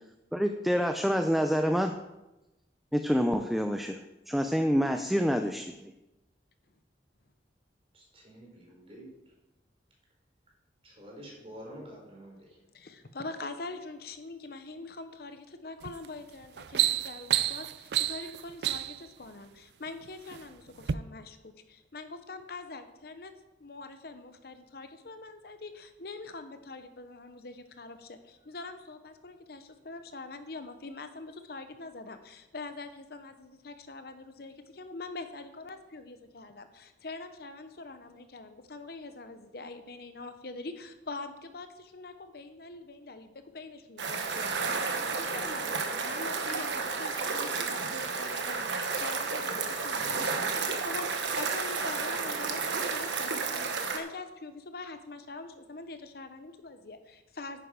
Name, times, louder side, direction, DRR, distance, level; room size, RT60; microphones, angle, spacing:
voice 1, 0.3-1.9 2.9-4.0 4.3-5.9, equal, ahead, 5 dB, 0.5 m, -27 dB
voice 2, 7.9-9.1 10.8-12.4, equal, 30° right, -2 dB, 4.2 m, -48 dB
voice 3, 12.7-23.3 23.6-57.6, left 3 dB, 60° left, 9 dB, 0.9 m, -44 dB
sound 1, 15.8-16.1 16.4-19.1 19.9-20.4 20.8-20.9, right 12 dB, 65° right, 0.4 m, -29 dB
sound 2, 44.0-54.0, right 4 dB, 85° right, 1.3 m, -32 dB
10.0 x 9.3 x 5.1 m, 0.98 s
head